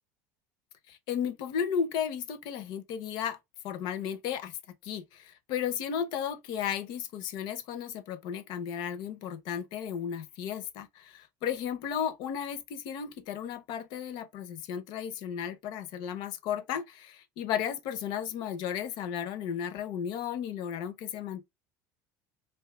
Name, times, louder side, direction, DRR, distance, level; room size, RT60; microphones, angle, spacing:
voice 1, 0.9-3.4 3.6-4.5 4.8-21.4, left 8 dB, 60° left, 0.6 m, -34 dB
2.6 x 2.3 x 3.5 m
supercardioid pair, 105°, 8 cm